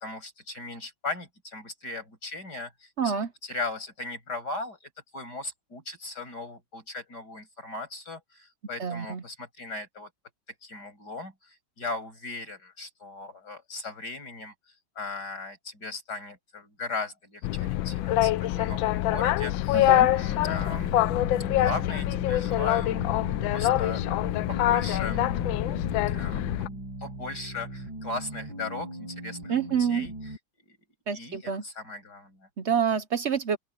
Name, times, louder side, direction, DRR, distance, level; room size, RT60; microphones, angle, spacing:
voice 1, 0.0-3.2 3.4-4.8 5.1-10.1 10.6-14.5 15.0-20.9 21.6-23.2 23.5-24.1 24.5-25.2 26.0-29.5 29.8-30.1 30.7-30.8 31.1-32.5, left 3 dB, 55° left, 7.6 m, -38 dB
voice 2, 3.0-3.3 8.8-9.2 19.7-20.1 29.5-30.1 31.1-31.6 32.6-33.6, right 7 dB, 55° right, 0.8 m, -27 dB
Boat Water vehicle, 17.4-26.7, left 14 dB, 85° left, 1.4 m, -25 dB
sound 1, 20.4-30.4, right 1 dB, 80° right, 7.6 m, -40 dB
open air
omnidirectional pair, 2.1 m